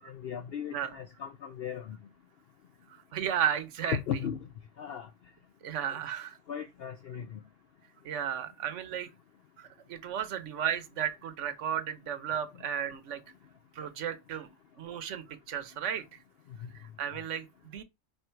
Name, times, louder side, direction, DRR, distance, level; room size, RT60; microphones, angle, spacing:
voice 1, 0.0-2.0 3.9-4.4 4.8-5.1 6.5-7.4, left 8 dB, 60° left, 0.7 m, -36 dB
voice 2, 2.9-4.0 5.6-6.4 8.0-9.1 9.6-13.2 13.7-14.5 14.8-16.2 16.7-17.8, right 9 dB, 70° right, 1.1 m, -34 dB
4.7 x 4.6 x 4.5 m
omnidirectional pair, 1.4 m